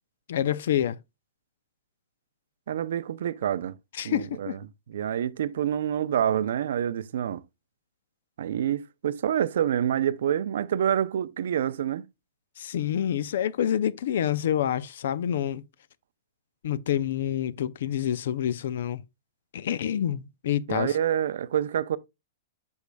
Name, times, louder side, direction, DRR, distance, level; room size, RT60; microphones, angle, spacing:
voice 1, 0.3-1.0 4.0-4.6 12.6-15.6 16.6-19.0 19.5-21.0, left 10 dB, 55° left, 0.4 m, -27 dB
voice 2, 2.7-3.7 4.0-4.6 4.9-7.4 8.4-12.0 20.7-22.0, right 9 dB, 60° right, 0.4 m, -27 dB
8.3 x 6.3 x 2.2 m
supercardioid pair, 180°, 0 cm